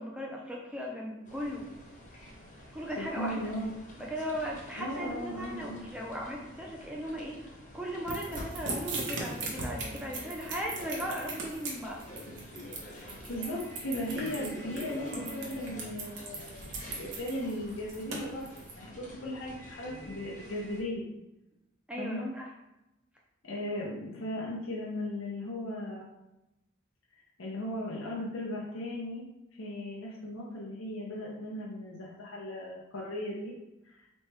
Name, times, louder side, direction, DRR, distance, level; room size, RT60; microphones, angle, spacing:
voice 1, 0.0-1.7 2.7-3.5 4.0-12.0 21.9-22.5, equal, 5° right, -2 dB, 0.6 m, -37 dB
sound 1, 1.2-20.8, left 1 dB, 35° left, 1.0 m, -47 dB
voice 2, 3.0-3.7 4.8-5.8 12.9-21.1 22.0-22.3 23.4-26.1 27.4-29.3 29.5-33.5 33.8-34.1, left 1 dB, 70° left, -4 dB, 0.7 m, -37 dB
sound 2, 8.1-18.7, right 3 dB, 55° right, 0.9 m, -38 dB
4.4 x 3.1 x 3.3 m, 0.93 s
head